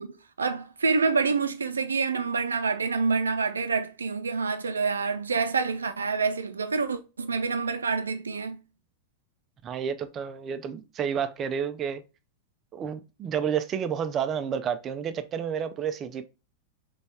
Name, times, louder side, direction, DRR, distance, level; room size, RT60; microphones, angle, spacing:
voice 1, 0.0-8.6, right 4 dB, 75° right, 0.6 m, -27 dB
voice 2, 9.6-12.0 12.7-16.2, right 7 dB, 30° right, 0.5 m, -30 dB
4.0 x 3.4 x 3.3 m
figure-of-eight pair, 90°, 0 cm